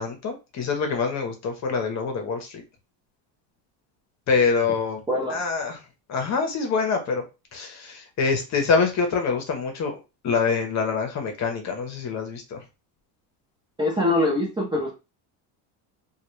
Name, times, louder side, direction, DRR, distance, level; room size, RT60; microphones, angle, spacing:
voice 1, 0.0-2.6 4.3-5.0 5.3-5.8 6.1-7.2 7.5-9.9 10.2-12.6, left 5 dB, 40° left, 5 dB, 0.7 m, -25 dB
voice 2, 5.1-5.4 13.8-14.9, left 1 dB, 10° right, -3 dB, 0.4 m, -23 dB
2.3 x 2.1 x 3.0 m, 0.28 s
cardioid pair, 130°, 45 cm